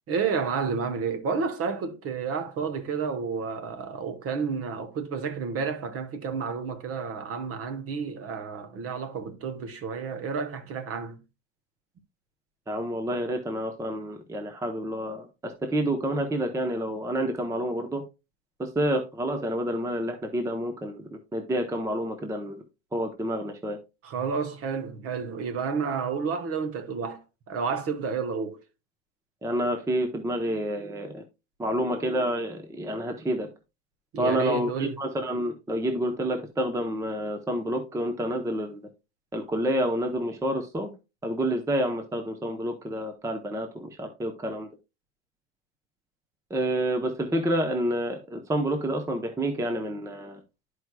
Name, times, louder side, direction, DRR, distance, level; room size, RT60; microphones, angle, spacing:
voice 1, 0.1-11.2 24.0-27.2 27.5-28.6 34.1-35.0, right 5 dB, 35° right, 1.1 m, -30 dB
voice 2, 12.7-18.0 18.6-22.6 22.9-23.8 29.4-31.2 31.6-33.5 34.2-38.8 39.3-40.9 41.2-44.7 46.5-50.4, right 1 dB, 10° right, 0.7 m, -29 dB
12.0 x 4.8 x 2.2 m
supercardioid pair, 130°, 41 cm